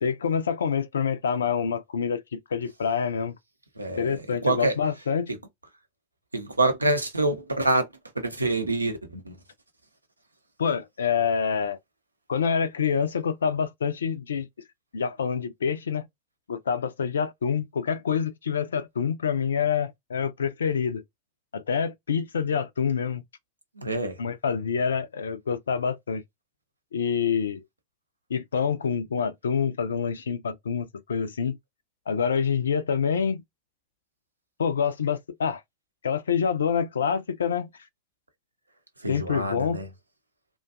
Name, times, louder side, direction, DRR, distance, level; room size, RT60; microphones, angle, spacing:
voice 1, 0.0-3.3 4.0-5.3 10.6-11.8 12.3-14.5 14.9-16.1 16.5-21.0 21.5-23.2 24.2-26.2 26.9-27.6 28.3-31.6 32.1-33.4 34.6-35.6 36.0-37.7 39.1-39.8, left 6 dB, 70° left, 0.4 m, -26 dB
voice 2, 3.8-4.8 6.3-7.9 8.2-9.4 23.8-24.2 39.0-39.9, right 2 dB, 80° right, 0.5 m, -26 dB
2.4 x 2.2 x 2.3 m
figure-of-eight pair, 90°, 0 cm